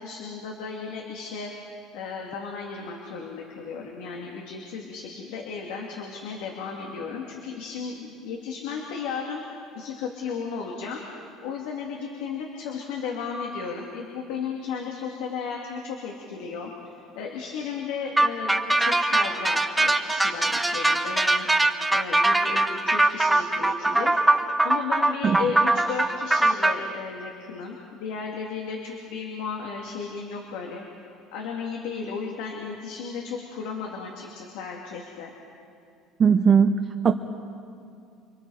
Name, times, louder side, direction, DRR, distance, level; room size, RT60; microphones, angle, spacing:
voice 1, 0.0-1.5 1.9-11.0 11.4-21.5 21.9-30.8 31.3-35.3, left 5 dB, 85° left, 0 dB, 2.7 m, -34 dB
sound 1, 18.2-26.7, right 2 dB, 5° right, 1.1 m, -22 dB
voice 2, 36.2-37.1, right 6 dB, 30° right, 6 dB, 0.9 m, -19 dB
29.0 x 24.0 x 5.0 m, 2.4 s
cardioid pair, 145°, 0 cm